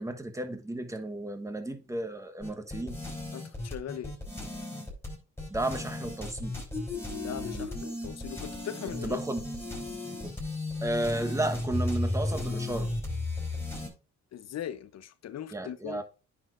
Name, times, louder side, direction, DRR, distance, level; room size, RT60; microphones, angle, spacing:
voice 1, 0.0-3.0 5.5-6.5 9.0-9.4 10.2-10.3 10.8-12.9 15.5-16.0, right 1 dB, 10° right, 1.2 m, -33 dB
sound 1, 2.4-13.9, left 2 dB, 10° left, 4.1 m, -34 dB
voice 2, 3.3-4.1 7.2-9.2 14.3-16.0, left 9 dB, 60° left, 0.8 m, -39 dB
9.9 x 6.1 x 2.6 m
cardioid pair, 90°, 30 cm